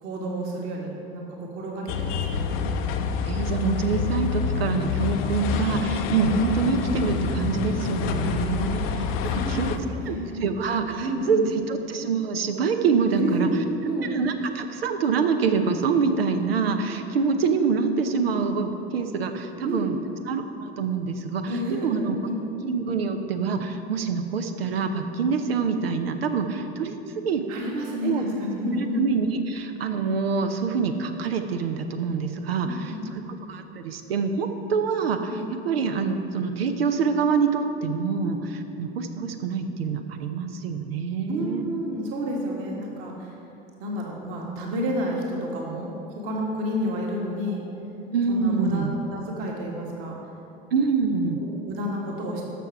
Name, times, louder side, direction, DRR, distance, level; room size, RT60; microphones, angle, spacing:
voice 1, 0.0-2.6 9.3-10.4 11.0-11.4 13.1-14.1 19.6-19.9 21.5-22.4 27.5-29.1 32.6-33.0 35.3-35.5 38.2-38.3 41.3-43.3 43.8-47.6 48.3-50.2 51.3-52.4, equal, 45° right, -2 dB, 1.9 m, -30 dB
sound 1, 1.9-9.8, left 6 dB, 45° left, 0.8 m, -27 dB
voice 2, 3.3-9.7 10.1-13.5 14.1-20.0 20.3-22.2 22.6-27.0 27.2-27.5 28.0-28.2 28.8-38.4 38.8-41.6 48.1-48.9 50.7-51.4, right 5 dB, 70° right, 6 dB, 0.8 m, -26 dB
14.0 x 6.0 x 4.7 m, 2.9 s
figure-of-eight pair, 80°, 31 cm